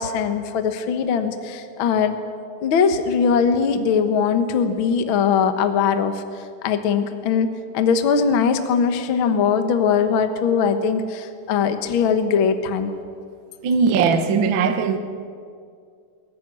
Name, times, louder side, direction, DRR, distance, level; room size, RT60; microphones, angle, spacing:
voice 1, 0.0-2.2 2.6-6.2 6.6-7.5 7.7-12.9, left 6 dB, 60° left, 1.3 m, -20 dB
voice 2, 13.6-15.0, right 5 dB, 70° right, 1.1 m, -19 dB
22.0 x 14.0 x 9.7 m
omnidirectional pair, 4.0 m